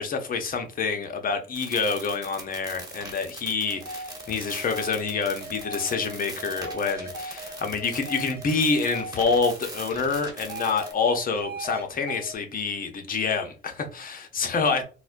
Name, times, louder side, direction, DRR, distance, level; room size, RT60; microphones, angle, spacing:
voice 1, 0.0-14.8, left 4 dB, 45° left, 0.8 m, -27 dB
sound 1, 1.5-10.9, right 2 dB, 20° right, 1.2 m, -41 dB
sound 2, 3.6-9.3 9.7-11.8 12.1-12.3, right 2 dB, 55° right, 0.9 m, -39 dB
4.1 x 2.2 x 2.6 m
cardioid pair, 90°, 20 cm